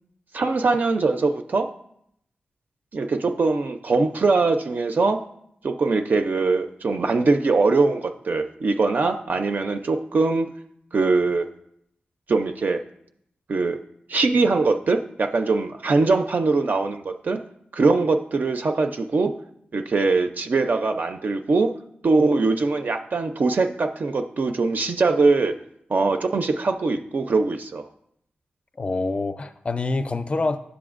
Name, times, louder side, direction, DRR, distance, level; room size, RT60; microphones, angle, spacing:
voice 1, 0.3-1.7 2.9-5.2 5.6-10.5 10.9-11.5 12.3-12.8 13.5-13.8 14.1-17.4 17.7-19.3 19.7-21.7 22.0-25.6 25.9-27.9, right 3 dB, 55° right, 6 dB, 0.4 m, -22 dB
voice 2, 28.8-30.6, left 3 dB, 35° left, 10 dB, 0.4 m, -26 dB
10.5 x 6.9 x 2.4 m, 0.73 s
wide cardioid pair, 85°, 4 cm